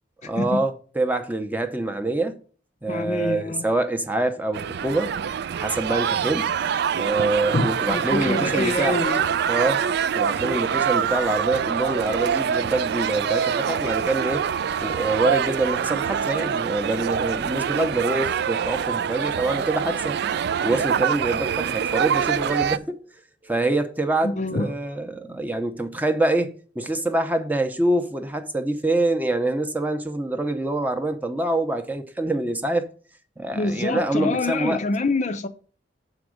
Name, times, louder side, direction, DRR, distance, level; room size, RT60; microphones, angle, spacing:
voice 1, 0.2-2.4 2.8-5.1 5.5-6.5 6.9-9.0 9.5-9.8 10.1-14.4 14.8-20.2 20.6-23.1 23.4-32.9 33.4-34.8, right 2 dB, 10° right, 0.7 m, -25 dB
voice 2, 2.9-3.7 7.5-9.3 24.2-24.7 33.5-35.5, left 2 dB, 35° left, 0.5 m, -26 dB
sound 1, 4.5-22.8, right 8 dB, 55° right, 0.3 m, -25 dB
7.1 x 4.8 x 6.3 m
head